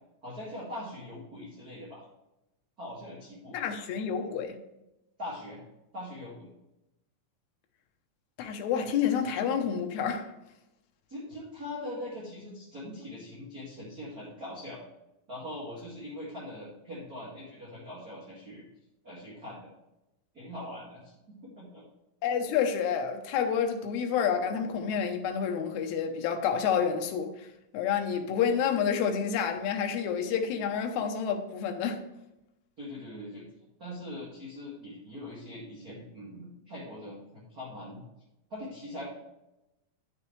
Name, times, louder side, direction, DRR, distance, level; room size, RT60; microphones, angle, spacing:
voice 1, 0.2-2.0 2.8-3.5 5.2-5.6 5.9-6.5 11.1-14.8 15.3-18.7 19.0-19.7 20.3-21.1 21.6-21.8 32.8-33.4 33.8-38.0 38.5-39.0, left 1 dB, 30° right, 2.0 m, -41 dB
voice 2, 3.5-4.6 8.4-10.3 22.2-27.5 27.7-32.0, left 7 dB, 70° left, 2.0 m, -29 dB
10.5 x 6.6 x 3.2 m
omnidirectional pair, 4.2 m